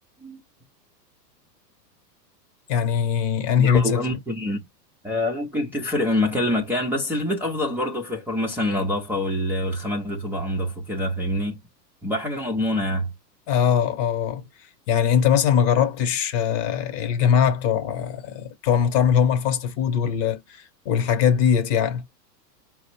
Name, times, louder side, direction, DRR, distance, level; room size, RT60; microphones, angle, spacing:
voice 1, 2.7-4.1 13.5-14.4 14.9-22.0, left 8 dB, 45° left, 1.1 m, -21 dB
voice 2, 3.6-4.6 5.0-11.6 12.0-13.1, left 1 dB, 5° right, 0.5 m, -25 dB
4.7 x 2.0 x 4.4 m
hypercardioid pair, 125°, 50 cm